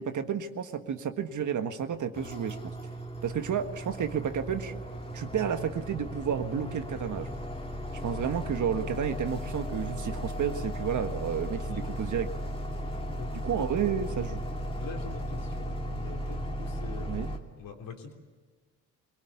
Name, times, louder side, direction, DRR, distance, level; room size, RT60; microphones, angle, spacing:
voice 1, 0.0-2.6 3.2-4.7 5.1-7.3 8.0-12.3 13.3-14.4 17.1-17.3, right 8 dB, 50° right, 8 dB, 1.6 m, -31 dB
sound 1, 2.1-17.4, equal, 15° left, 2.6 m, -36 dB
voice 2, 14.8-17.1 17.6-18.1, left 5 dB, 60° left, 2 dB, 3.5 m, -43 dB
22.0 x 19.0 x 9.5 m, 1.4 s
supercardioid pair, 70°, 38 cm